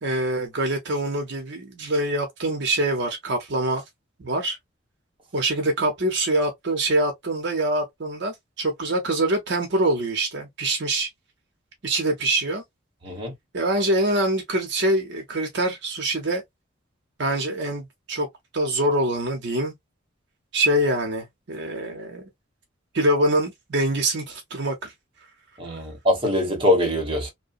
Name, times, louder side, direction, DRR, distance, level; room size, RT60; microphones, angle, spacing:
voice 1, 0.0-3.8 4.2-4.6 5.3-11.1 11.8-12.6 13.5-16.4 17.2-18.3 18.5-19.7 20.5-22.3 22.9-24.9 25.7-25.8, right 1 dB, 55° right, 0.7 m, -24 dB
voice 2, 25.6-27.3, left 1 dB, 25° right, 0.9 m, -23 dB
2.8 x 2.2 x 2.5 m
head